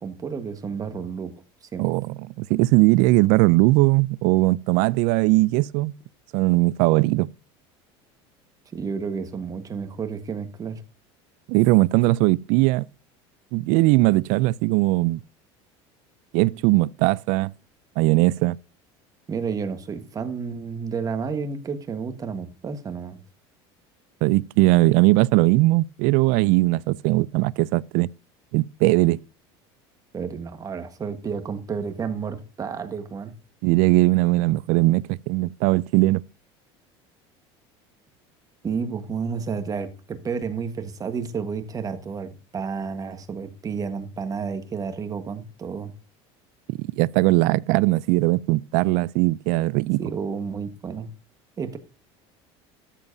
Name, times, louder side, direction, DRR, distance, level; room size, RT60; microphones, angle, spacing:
voice 1, 0.0-1.3 1.7-1.9 8.7-10.8 19.3-23.2 30.1-33.3 38.6-45.9 50.0-51.1 51.6-51.8, right 5 dB, 25° right, 1.4 m, -31 dB
voice 2, 1.8-5.9 6.3-7.3 11.5-12.9 13.5-15.2 16.3-17.5 18.0-18.6 24.2-28.1 28.5-29.2 33.6-36.2 46.7-50.0, right 20 dB, 70° right, 0.4 m, -19 dB
13.0 x 7.2 x 2.7 m
supercardioid pair, 125°, 13 cm